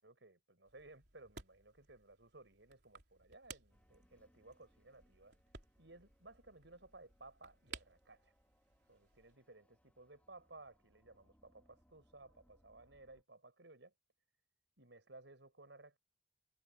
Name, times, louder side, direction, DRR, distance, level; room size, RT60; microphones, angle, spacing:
voice 1, 0.0-5.4 5.8-8.3 8.9-13.9 14.8-16.0, right 2 dB, 90° right, 7.1 m, -59 dB
sound 1, 0.6-9.4, right 6 dB, 70° right, 3.4 m, -58 dB
sound 2, 3.7-13.2, equal, 10° left, 4.5 m, -74 dB
head